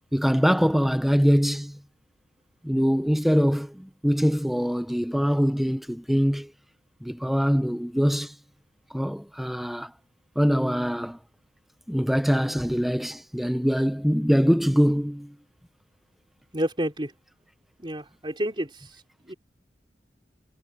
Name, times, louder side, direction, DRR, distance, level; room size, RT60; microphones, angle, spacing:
voice 1, 0.1-1.8 2.6-6.5 7.0-8.4 8.9-9.9 10.4-11.2 11.9-15.3, equal, ahead, 0.5 m, -23 dB
voice 2, 16.5-17.1 17.8-19.0 19.3-19.4, equal, 30° right, 4.2 m, -30 dB
head